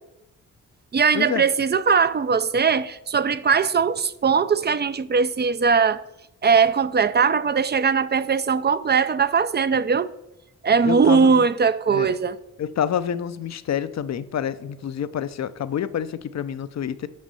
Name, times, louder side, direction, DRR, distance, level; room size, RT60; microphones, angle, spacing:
voice 1, 0.9-6.0 6.4-10.1 10.6-12.4, right 5 dB, 35° right, 0.5 m, -20 dB
voice 2, 10.9-11.4 11.9-12.1 12.6-17.1, left 9 dB, 55° left, 0.6 m, -28 dB
6.4 x 5.3 x 6.8 m
cardioid pair, 65°, 31 cm